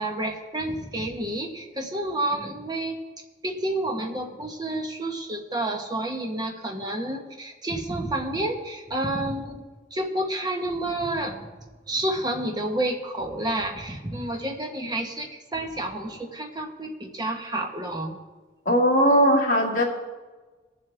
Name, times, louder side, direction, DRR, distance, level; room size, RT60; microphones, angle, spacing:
voice 1, 0.0-3.0 3.4-9.6 9.9-11.5 11.9-18.2, right 1 dB, 20° right, 2 dB, 1.2 m, -29 dB
voice 2, 18.7-19.8, equal, 45° left, -3 dB, 2.0 m, -19 dB
20.5 x 7.4 x 3.4 m, 1.3 s
head